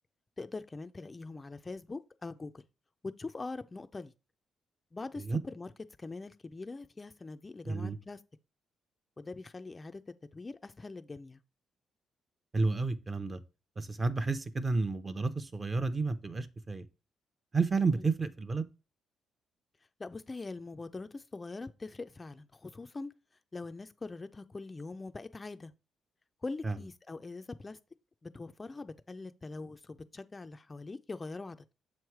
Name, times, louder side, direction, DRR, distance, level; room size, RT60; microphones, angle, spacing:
voice 1, 0.4-2.6 3.2-4.1 4.9-5.7 6.0-8.2 9.2-10.0 10.3-11.4 17.9-18.1 20.0-23.1 23.5-25.7 26.4-27.8 28.2-31.6, left 3 dB, 25° left, 0.4 m, -43 dB
voice 2, 7.6-8.0 12.5-13.4 13.8-16.8 17.5-18.6 26.6-26.7, right 4 dB, 30° right, 0.7 m, -31 dB
7.0 x 3.1 x 4.7 m
cardioid pair, 90°, 0 cm